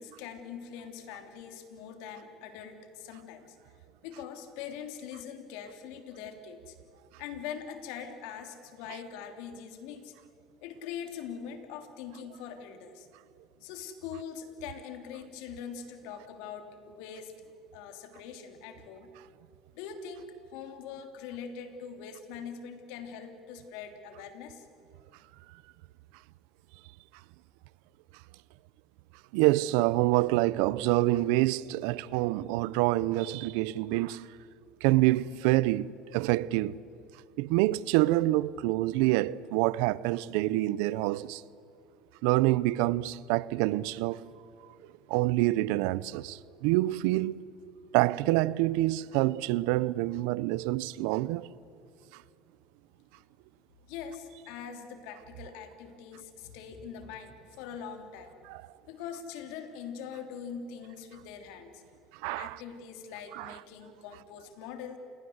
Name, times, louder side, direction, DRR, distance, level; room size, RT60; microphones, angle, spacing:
voice 1, 0.0-3.6 4.0-6.8 7.2-10.1 10.6-13.1 13.6-17.3 17.7-19.1 19.7-20.3 20.5-24.7 53.9-58.4 58.9-61.8 62.3-65.0, left 7 dB, 80° left, 3.1 m, -43 dB
voice 2, 29.3-34.3 34.8-36.8 37.4-41.4 42.2-44.2 45.1-47.4 47.9-51.5 58.5-58.6 62.2-62.6 63.3-63.6, right 18 dB, 80° right, 0.6 m, -26 dB
28.0 x 21.0 x 8.0 m
supercardioid pair, 105°, 0 cm